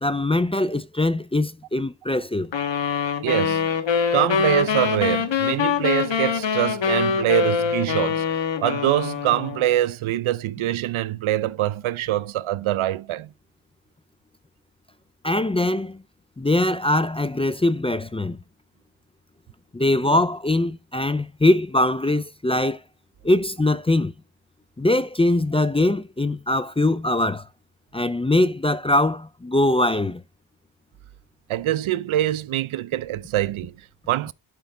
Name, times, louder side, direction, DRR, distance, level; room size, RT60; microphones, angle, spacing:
voice 1, 0.0-2.5 15.2-16.0 16.4-18.4 19.7-22.8 23.2-24.1 24.8-27.5 27.9-30.2, left 1 dB, 15° left, 0.4 m, -22 dB
sound 1, 2.5-9.7, left 6 dB, 70° left, 1.4 m, -24 dB
voice 2, 3.2-3.7 4.1-8.3 8.6-13.3 31.5-34.3, right 13 dB, 85° right, 0.6 m, -24 dB
11.0 x 5.2 x 3.4 m
wide cardioid pair, 100°, 48 cm